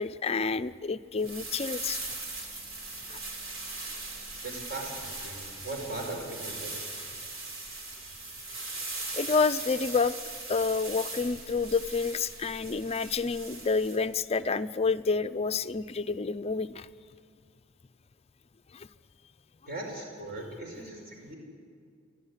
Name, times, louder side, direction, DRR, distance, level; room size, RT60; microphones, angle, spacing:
voice 1, 0.0-2.0 3.1-3.2 9.1-10.1 10.5-16.9 18.7-18.9, left 4 dB, 30° left, 12 dB, 0.5 m, -29 dB
sound 1, 1.2-14.0, right 3 dB, 80° right, 3.4 m, -40 dB
voice 2, 4.4-6.7 19.7-21.4, right 2 dB, 50° right, 1 dB, 5.2 m, -39 dB
30.0 x 11.5 x 9.8 m, 2.2 s
head